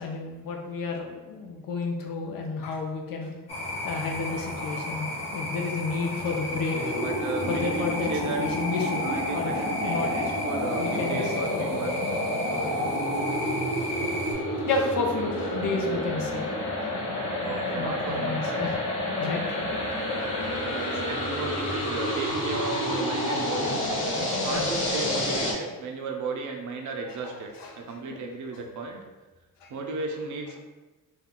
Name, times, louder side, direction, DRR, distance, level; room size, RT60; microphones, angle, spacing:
voice 1, 0.0-3.3 3.8-7.0 7.5-10.3 10.8-11.7 12.5-12.7 14.3-16.5 17.8-18.8 19.2-19.7 20.0-20.1 21.6-21.7 24.5-24.7 27.1-28.2 29.6-29.7, left 4 dB, 75° left, 2 dB, 0.6 m, -32 dB
sound 1, 3.5-14.3, left 1 dB, 20° left, 0.5 m, -35 dB
voice 2, 6.5-8.4 9.0-12.0 17.4-18.6 20.5-23.7 24.2-29.0 29.7-30.6, right 3 dB, 55° right, 2 dB, 0.5 m, -35 dB
sound 2, 6.7-25.5, left 1 dB, 55° left, 1.0 m, -29 dB
2.3 x 2.2 x 3.6 m, 1.2 s
wide cardioid pair, 165°, 35 cm